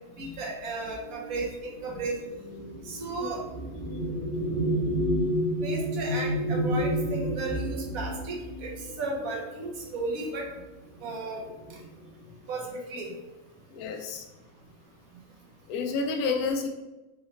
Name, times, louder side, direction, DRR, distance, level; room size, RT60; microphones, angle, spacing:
voice 1, 0.2-2.2 2.8-3.4 5.6-8.7 9.0-10.5 11.0-11.4 12.5-13.1, right 3 dB, 75° right, -1 dB, 1.4 m, -34 dB
sound 1, 1.1-10.0 10.9-11.1 11.4-12.0, equal, 40° right, 1.0 m, -30 dB
voice 2, 13.7-14.3 15.7-16.7, left 4 dB, 85° left, 3 dB, 1.1 m, -30 dB
4.1 x 3.9 x 3.0 m, 1.1 s
omnidirectional pair, 1.5 m